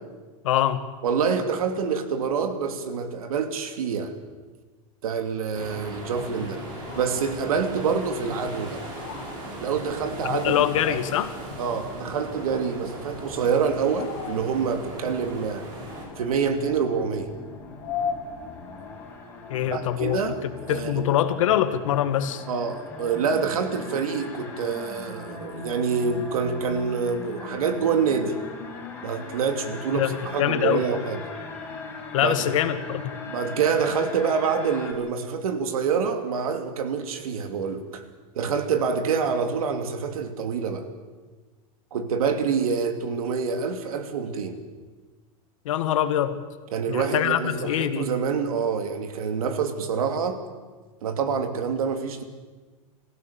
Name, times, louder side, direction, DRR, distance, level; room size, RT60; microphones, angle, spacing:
voice 1, 0.4-0.8 10.3-11.3 19.5-20.3 20.7-22.4 29.9-30.8 32.1-33.1 45.7-46.4 46.9-48.1, left 11 dB, 65° left, 10 dB, 1.7 m, -24 dB
voice 2, 1.0-4.2 5.0-6.6 7.0-8.8 9.6-10.6 10.9-11.0 11.6-15.7 16.2-17.3 19.6-21.1 22.5-28.4 29.0-31.2 32.2-32.3 33.3-38.0 38.3-40.9 41.9-44.6 46.7-50.4 51.0-52.2, right 6 dB, 85° right, 7 dB, 2.6 m, -26 dB
sound 1, 5.5-16.1, right 1 dB, 25° right, 4.4 m, -38 dB
sound 2, 6.7-19.2, left 7 dB, 35° left, 2.9 m, -40 dB
sound 3, 16.0-34.9, left 3 dB, 10° left, 3.6 m, -40 dB
27.0 x 15.5 x 7.0 m, 1.4 s
supercardioid pair, 170°, 18 cm